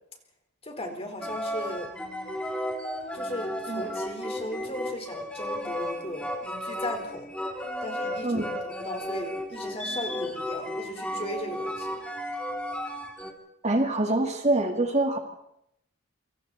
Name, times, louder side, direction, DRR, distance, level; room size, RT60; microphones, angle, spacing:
voice 1, 0.6-2.0 3.1-7.3 7.8-12.0, left 1 dB, 30° left, 3 dB, 4.4 m, -37 dB
sound 1, 1.2-13.3, left 1 dB, 5° left, 2.6 m, -34 dB
voice 2, 13.6-15.2, right 2 dB, 35° right, 4 dB, 2.2 m, -25 dB
28.0 x 25.5 x 4.3 m, 0.78 s
head